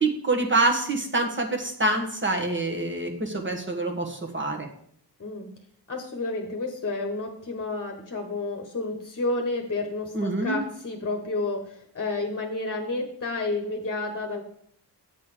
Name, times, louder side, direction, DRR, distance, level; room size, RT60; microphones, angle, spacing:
voice 1, 0.0-4.7 10.1-10.6, right 2 dB, 25° right, 3 dB, 1.4 m, -26 dB
voice 2, 5.9-14.4, left 2 dB, 35° left, 3 dB, 1.2 m, -30 dB
8.3 x 4.2 x 6.7 m, 0.67 s
wide cardioid pair, 100°, 42 cm